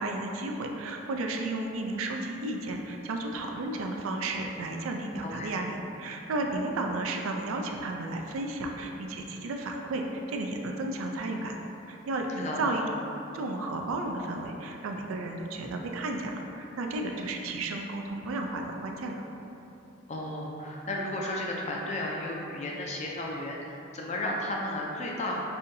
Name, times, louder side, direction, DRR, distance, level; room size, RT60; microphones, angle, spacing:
voice 1, 0.0-11.6 11.9-12.8 13.3-19.2, right 2 dB, 85° right, 2 dB, 0.4 m, -33 dB
voice 2, 5.2-5.5 12.4-12.6 20.1-25.4, left 1 dB, 35° left, -2 dB, 0.4 m, -33 dB
5.5 x 2.7 x 2.6 m, 2.9 s
head